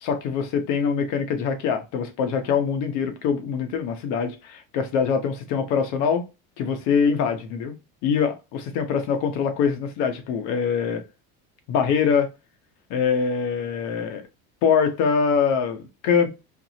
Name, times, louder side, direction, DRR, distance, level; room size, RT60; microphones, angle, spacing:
voice 1, 0.0-6.2 6.6-7.7 8.0-11.0 11.7-12.3 12.9-14.2 14.6-16.3, left 6 dB, 75° left, 1.1 m, -23 dB
4.7 x 2.6 x 2.8 m
cardioid pair, 150°, 30 cm